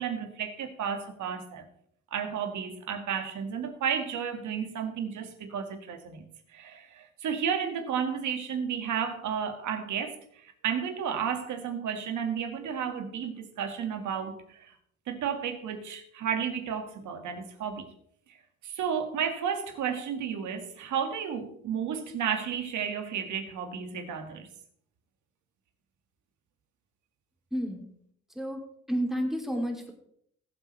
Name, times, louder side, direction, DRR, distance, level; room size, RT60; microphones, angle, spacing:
voice 1, 0.0-1.7 2.1-14.8 15.1-17.9 18.6-24.5, right 7 dB, 75° right, 1.9 m, -32 dB
voice 2, 27.5-27.9 28.3-28.6 28.9-29.9, equal, ahead, 3.0 m, -30 dB
19.5 x 8.0 x 3.3 m
cardioid pair, 90°, 30 cm